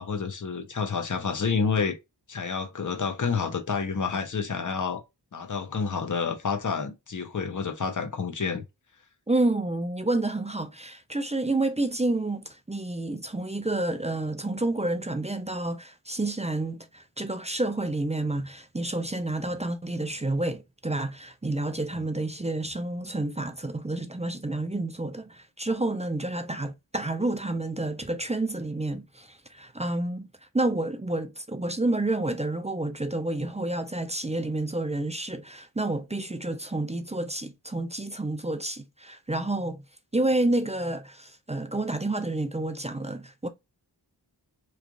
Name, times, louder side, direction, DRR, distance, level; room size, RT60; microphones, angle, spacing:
voice 1, 0.0-2.0 2.3-5.0 5.3-8.6, left 5 dB, 45° left, 0.8 m, -29 dB
voice 2, 9.3-30.3 30.5-39.8 40.1-43.5, right 2 dB, 15° right, 0.4 m, -29 dB
3.1 x 2.4 x 3.6 m
wide cardioid pair, 55°, 43 cm